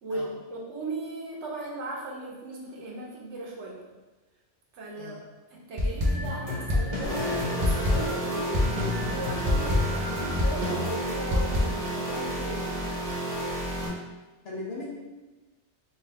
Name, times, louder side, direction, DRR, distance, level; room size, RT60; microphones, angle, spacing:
voice 1, 0.0-3.9 4.7-5.2 5.5-12.8, right 2 dB, 75° right, -2 dB, 1.1 m, -37 dB
sound 1, 5.8-11.6, left 1 dB, 40° right, 0.6 m, -27 dB
sound 2, 7.0-13.9, right 1 dB, 5° left, 0.6 m, -32 dB
voice 2, 14.4-14.9, left 2 dB, 60° left, -4 dB, 1.1 m, -38 dB
3.6 x 2.6 x 3.4 m, 1.2 s
omnidirectional pair, 1.2 m